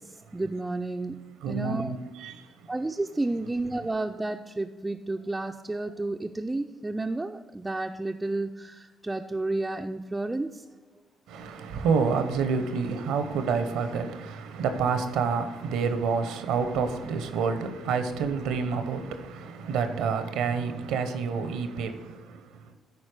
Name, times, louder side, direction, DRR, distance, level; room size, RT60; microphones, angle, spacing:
voice 1, 0.0-2.0 2.7-10.7, right 2 dB, 15° right, 0.4 m, -31 dB
voice 2, 1.4-2.5 11.3-22.7, right 5 dB, 75° right, 0.8 m, -28 dB
10.5 x 4.3 x 4.8 m
hypercardioid pair, 60°, 0 cm